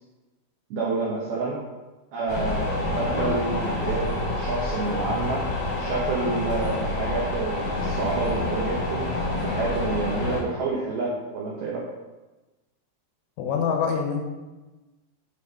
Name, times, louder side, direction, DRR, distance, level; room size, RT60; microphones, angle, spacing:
voice 1, 0.7-1.6 2.1-5.5 5.8-9.1 9.4-11.9, right 3 dB, 85° right, -4 dB, 2.2 m, -29 dB
sound 1, 2.3-10.4, left 2 dB, 60° left, 1.5 m, -27 dB
voice 2, 13.4-14.3, left 6 dB, 80° left, 2 dB, 3.4 m, -25 dB
10.0 x 3.4 x 5.3 m, 1.1 s
omnidirectional pair, 5.9 m